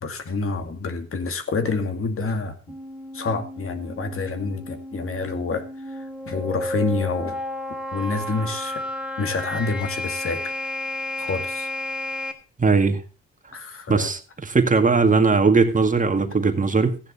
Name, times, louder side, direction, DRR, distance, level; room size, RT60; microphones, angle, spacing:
voice 1, 0.0-2.7 3.1-7.4 7.9-8.8 9.2-10.5 11.2-11.7 13.5-14.1, left 3 dB, 45° left, 8 dB, 2.3 m, -28 dB
sound 1, 2.7-12.3, left 1 dB, 5° right, 2.7 m, -32 dB
voice 2, 12.6-13.0 13.9-17.0, right 4 dB, 25° right, 6 dB, 1.9 m, -19 dB
15.0 x 9.9 x 4.0 m, 0.33 s
cardioid pair, 90°, 30 cm